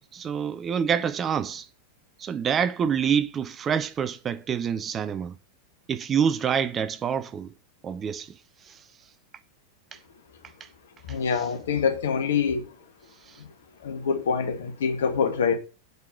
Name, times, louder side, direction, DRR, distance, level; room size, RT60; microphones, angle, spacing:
voice 1, 0.1-1.6 2.2-5.3 5.9-7.5 7.8-8.3 8.7-8.8, right 7 dB, 25° right, 0.5 m, -26 dB
voice 2, 11.1-12.7 13.4-13.5 13.8-15.6, left 6 dB, 60° left, 1.7 m, -25 dB
8.1 x 4.7 x 6.6 m
figure-of-eight pair, 90°, 0 cm